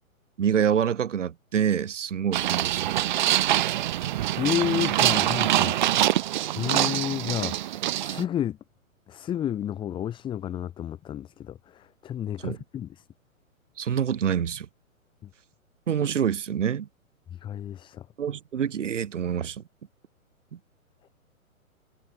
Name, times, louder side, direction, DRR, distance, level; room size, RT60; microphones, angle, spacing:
voice 1, 0.4-2.9 12.4-12.6 13.8-14.7 15.9-16.9 18.2-19.6, right 8 dB, 60° right, 1.7 m, -26 dB
sound 1, 2.3-8.2, right 13 dB, 35° right, 0.9 m, -24 dB
voice 2, 4.3-8.6 9.1-13.0 15.2-15.3 17.3-18.1, left 10 dB, 10° left, 1.2 m, -31 dB
figure-of-eight pair, 120°, 42 cm